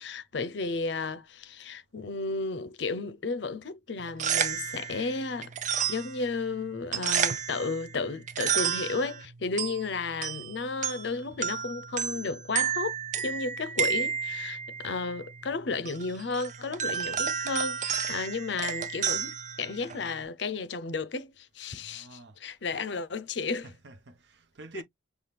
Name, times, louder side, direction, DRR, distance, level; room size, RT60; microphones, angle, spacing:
voice 1, 0.0-5.5 5.9-23.7 24.7-24.8, left 4 dB, 65° left, 0.6 m, -33 dB
sound 1, 4.0-20.2, right 8 dB, 40° right, 0.4 m, -32 dB
voice 2, 21.8-22.4 22.7-22.9 23.6-24.8, right 3 dB, 65° right, 0.8 m, -49 dB
5.7 x 2.4 x 3.3 m
head